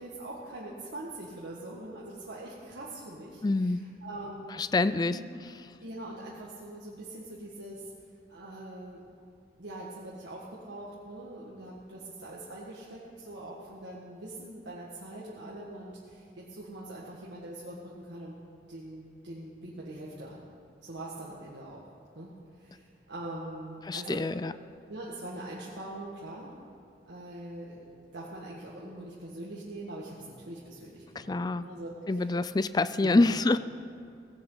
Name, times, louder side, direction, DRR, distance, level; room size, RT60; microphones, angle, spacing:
voice 1, 0.0-5.3 5.8-7.9 8.3-9.0 9.6-18.4 18.7-20.5 20.8-21.8 22.2-24.3 24.9-26.5 27.1-30.2 30.5-32.3 32.8-33.3, right 1 dB, 75° right, -5 dB, 1.7 m, -43 dB
voice 2, 3.4-3.9 4.6-5.2 23.9-24.5 31.2-31.7 32.1-33.6, left 2 dB, 20° left, 14 dB, 0.3 m, -26 dB
17.5 x 16.5 x 3.9 m, 2.3 s
head